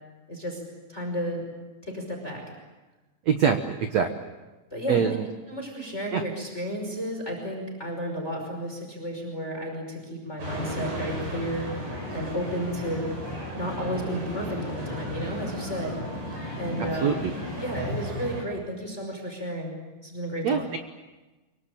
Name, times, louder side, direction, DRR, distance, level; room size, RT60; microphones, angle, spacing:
voice 1, 0.3-0.6 0.9-1.5 1.8-2.4 4.7-5.0 5.5-13.1 13.5-16.0 16.6-17.3 17.6-19.7 20.0-20.7, equal, 15° left, 2 dB, 5.4 m, -32 dB
voice 2, 3.3-4.1 4.9-5.2 6.1-6.2 17.0-17.1 20.4-20.8, right 7 dB, 90° right, 7 dB, 1.5 m, -23 dB
sound 1, 10.4-18.4, equal, 50° right, 8.9 m, -34 dB
25.5 x 24.0 x 9.0 m, 1.2 s
omnidirectional pair, 5.1 m